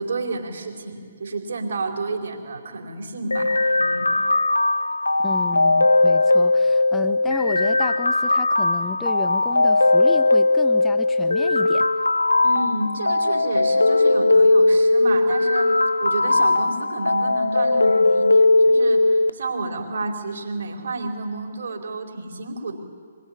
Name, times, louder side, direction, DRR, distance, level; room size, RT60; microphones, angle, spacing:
voice 1, 0.0-4.2 12.4-15.7 16.0-22.8, right 3 dB, 60° right, 2 dB, 4.4 m, -30 dB
sound 1, 3.3-19.3, left 2 dB, 85° left, 0.7 m, -19 dB
voice 2, 5.2-11.9, left 6 dB, 10° left, 10 dB, 1.3 m, -33 dB
25.5 x 22.5 x 9.7 m, 2.1 s
figure-of-eight pair, 135°, 0 cm